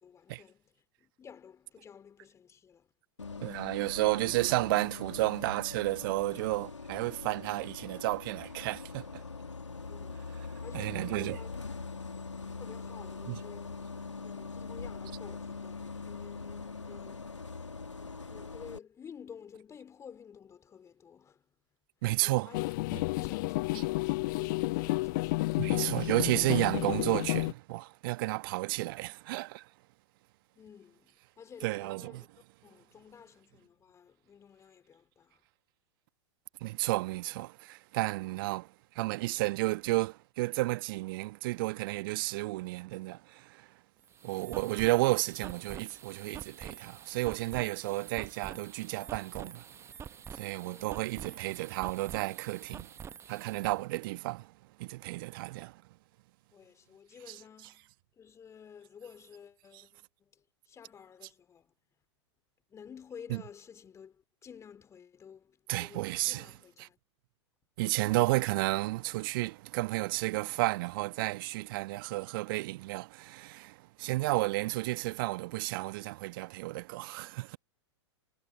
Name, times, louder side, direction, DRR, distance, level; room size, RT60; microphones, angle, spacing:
voice 1, 0.0-2.9 9.9-11.6 11.8-12.2 12.5-13.9 14.2-21.5 22.2-22.7 23.2-25.8 30.5-32.3 32.6-35.4 50.5-51.0 56.5-61.7 62.7-67.0, left 7 dB, 20° left, 2.6 m, -52 dB
Bus, 3.2-18.8, left 4 dB, 80° left, 2.2 m, -42 dB
voice 2, 3.4-9.2 10.7-11.4 13.3-13.4 22.0-22.6 22.9-23.0 23.7-23.8 25.6-29.7 31.6-32.3 36.6-43.7 44.2-49.7 50.3-52.9 53.3-54.5 54.8-55.8 57.2-57.7 59.7-59.8 63.3-63.4 65.7-66.5 66.8-66.9 67.8-77.6, right 20 dB, 50° right, 1.3 m, -32 dB
sound 1, 22.5-27.5, left 22 dB, 45° left, 0.4 m, -31 dB
sound 2, 44.0-53.8, right 7 dB, 15° right, 1.0 m, -47 dB
figure-of-eight pair, 95°, 15 cm